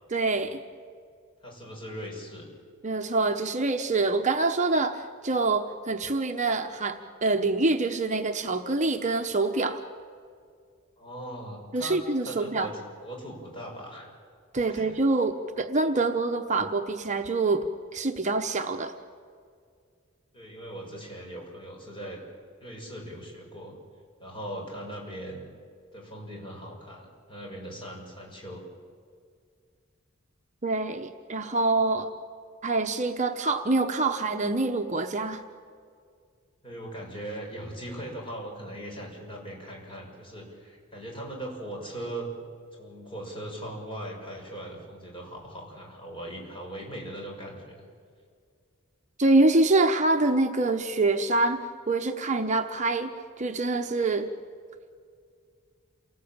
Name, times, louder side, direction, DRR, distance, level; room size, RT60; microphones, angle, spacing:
voice 1, 0.1-0.6 2.8-9.8 11.7-12.7 14.5-17.7 17.9-18.9 30.6-32.1 32.6-35.4 49.2-53.1 53.4-54.3, right 3 dB, 35° right, 5 dB, 0.9 m, -25 dB
voice 2, 1.4-2.5 11.0-14.1 14.7-14.9 20.3-22.2 22.6-23.7 24.2-25.5 25.9-28.6 36.6-42.3 42.8-47.9, right 1 dB, 25° left, -1 dB, 6.1 m, -39 dB
28.0 x 19.0 x 8.8 m, 2.2 s
head